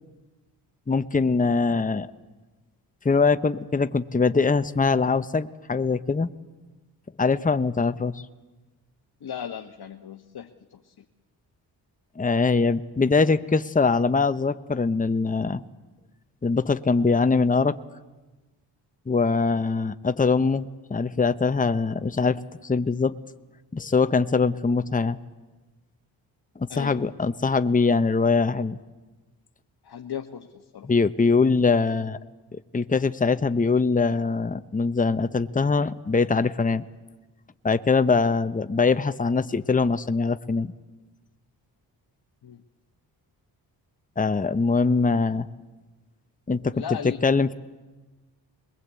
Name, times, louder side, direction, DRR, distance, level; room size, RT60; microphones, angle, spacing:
voice 1, 0.9-2.1 3.0-6.3 7.2-8.1 12.2-15.6 16.4-17.7 19.1-23.2 23.7-25.2 26.6-28.8 30.8-32.2 32.5-36.8 37.6-40.7 44.2-45.5 46.5-46.8 47.2-47.5, left 4 dB, 15° left, 11 dB, 1.0 m, -22 dB
voice 2, 9.2-10.9 26.7-27.1 29.8-30.9 42.4-42.6 46.7-47.2, left 9 dB, 55° left, 4 dB, 1.4 m, -37 dB
22.5 x 21.5 x 8.4 m, 1.2 s
supercardioid pair, 50°, 46 cm